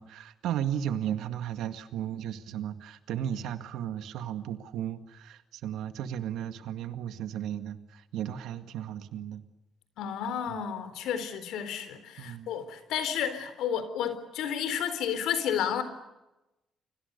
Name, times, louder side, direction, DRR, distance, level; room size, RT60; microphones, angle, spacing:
voice 1, 0.0-9.4 10.5-10.6 12.2-12.5, right 10 dB, 85° right, 10 dB, 2.0 m, -35 dB
voice 2, 10.0-15.8, left 8 dB, 85° left, 12 dB, 3.9 m, -31 dB
30.0 x 24.5 x 6.9 m, 0.98 s
cardioid pair, 90°, 0 cm